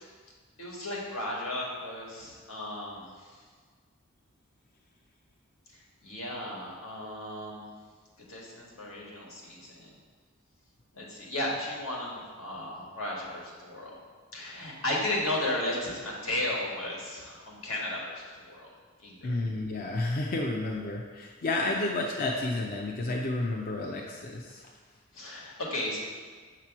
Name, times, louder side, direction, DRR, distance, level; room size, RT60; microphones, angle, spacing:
voice 1, 0.6-3.4 6.0-7.7 8.3-9.9 10.9-14.0 14.3-18.7 19.0-19.4 25.1-26.0, left 1 dB, 85° left, -4 dB, 1.6 m, -34 dB
voice 2, 19.2-24.7, left 2 dB, 45° left, 0 dB, 0.5 m, -31 dB
6.7 x 3.0 x 5.9 m, 1.5 s
head